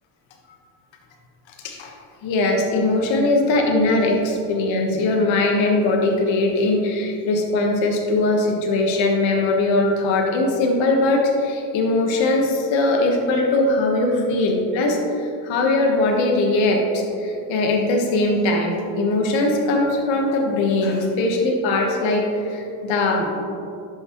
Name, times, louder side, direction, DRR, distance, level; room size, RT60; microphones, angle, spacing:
voice 1, 2.2-23.3, left 2 dB, 65° left, 1 dB, 1.4 m, -20 dB
10.5 x 5.9 x 3.0 m, 2.6 s
supercardioid pair, 95°, 49 cm